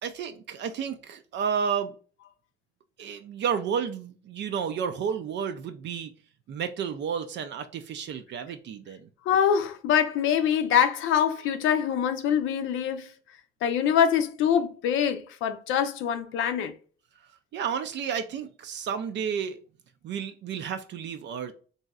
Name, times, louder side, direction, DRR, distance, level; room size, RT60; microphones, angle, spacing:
voice 1, 0.0-1.9 3.0-6.1 6.5-9.1 17.5-19.6 20.0-21.5, right 7 dB, 65° right, 0.4 m, -31 dB
voice 2, 9.3-13.1 13.6-16.7, left 8 dB, 85° left, 0.5 m, -24 dB
3.0 x 2.7 x 2.3 m
cardioid pair, 90°, 20 cm